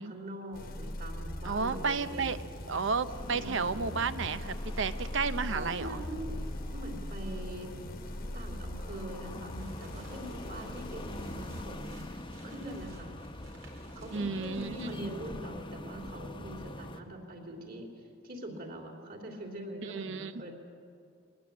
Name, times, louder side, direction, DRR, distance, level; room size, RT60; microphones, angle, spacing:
voice 1, 0.0-2.3 3.3-3.9 5.5-6.4 6.7-7.7 8.3-13.2 13.9-20.5, right 1 dB, 45° right, 2 dB, 3.5 m, -43 dB
sound 1, 0.5-12.5, left 1 dB, 45° left, 1.3 m, -41 dB
voice 2, 1.4-2.4 2.7-5.9 14.1-15.1 19.9-20.3, right 4 dB, 65° right, 13 dB, 0.8 m, -32 dB
sound 2, 3.1-17.0, left 1 dB, 25° left, 1.0 m, -45 dB
sound 3, 9.3-15.3, right 3 dB, 80° right, 4.8 m, -59 dB
21.5 x 19.5 x 8.6 m, 2.3 s
head